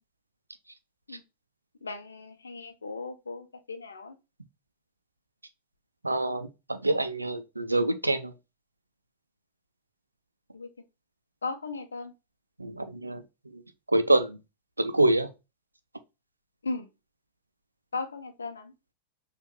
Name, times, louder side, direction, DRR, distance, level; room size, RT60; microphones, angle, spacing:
voice 1, 1.8-4.2 10.5-10.7 11.4-12.1 16.6-16.9 17.9-18.7, left 3 dB, 75° left, 0.7 m, -37 dB
voice 2, 6.0-8.3 12.6-13.2 13.5-13.6 13.9-14.4 14.8-15.3, right 2 dB, 85° right, 0.5 m, -26 dB
6.2 x 2.6 x 3.1 m
figure-of-eight pair, 90°, 0 cm